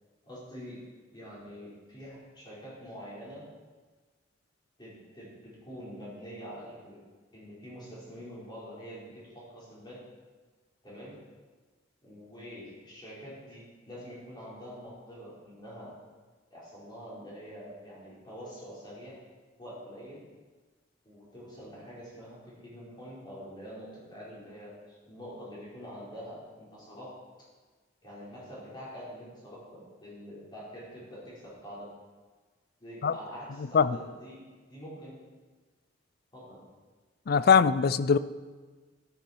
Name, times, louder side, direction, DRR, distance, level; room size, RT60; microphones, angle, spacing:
voice 1, 0.2-0.8 1.1-3.5 4.8-7.0 7.3-10.0 10.8-11.2 12.0-15.9 16.5-19.2 19.6-20.2 21.0-27.2 28.0-31.9 32.8-34.4 34.7-35.2 36.3-36.7, equal, 25° left, -8 dB, 4.8 m, -45 dB
voice 2, 37.3-38.2, left 6 dB, 55° left, 16 dB, 0.4 m, -21 dB
13.0 x 10.5 x 4.6 m, 1.4 s
head